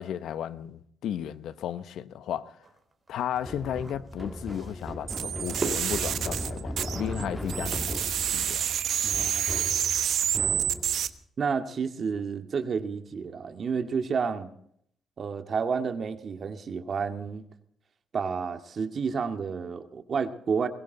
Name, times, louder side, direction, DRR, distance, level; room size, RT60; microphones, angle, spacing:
voice 1, 0.0-2.6 3.1-8.7, left 10 dB, 75° left, 1.0 m, -34 dB
sound 1, 2.6-8.8, right 3 dB, 30° right, 3.1 m, -40 dB
sound 2, 3.4-11.2, equal, ahead, 1.6 m, -37 dB
sound 3, 5.1-7.2 7.5-11.1, right 9 dB, 70° right, 1.1 m, -28 dB
voice 2, 9.0-9.4 11.4-14.5 15.2-17.4 18.1-20.7, right 5 dB, 50° right, 1.9 m, -30 dB
21.5 x 16.5 x 4.0 m
cardioid pair, 90°, 0 cm